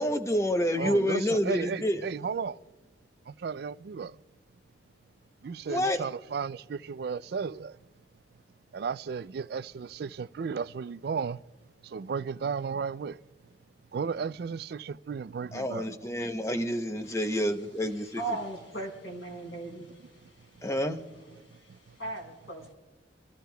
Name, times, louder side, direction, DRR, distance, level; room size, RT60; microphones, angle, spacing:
voice 1, 0.0-2.0 5.7-6.1 15.5-18.2 20.6-21.0, equal, 15° left, 0.7 m, -28 dB
voice 2, 0.7-2.5 3.4-4.1 5.4-7.7 8.7-11.4 11.9-13.1 13.9-15.8, right 6 dB, 55° right, 0.3 m, -34 dB
voice 3, 17.0-20.7 21.1-22.7, right 2 dB, 75° left, 4.3 m, -40 dB
25.5 x 15.0 x 2.3 m
head